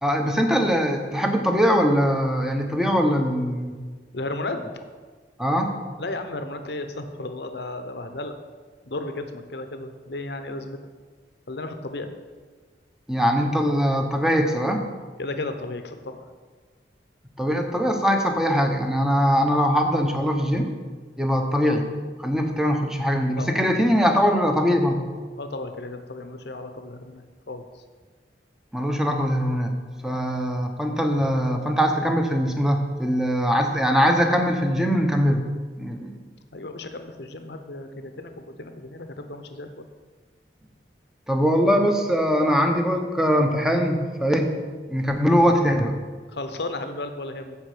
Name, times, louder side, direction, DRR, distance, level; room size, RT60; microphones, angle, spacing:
voice 1, 0.0-3.8 5.4-5.7 13.1-14.8 17.4-20.7 21.2-21.9 22.2-25.0 28.7-29.7 30.0-35.4 35.8-36.1 41.3-44.5 44.9-45.9, equal, 5° right, 3 dB, 1.0 m, -22 dB
voice 2, 4.1-4.6 6.0-8.4 8.9-10.8 11.5-12.1 15.2-16.2 23.4-23.6 25.4-27.6 30.0-30.2 36.5-39.9 46.3-47.6, left 2 dB, 70° left, 7 dB, 0.9 m, -34 dB
14.0 x 5.3 x 5.1 m, 1.4 s
head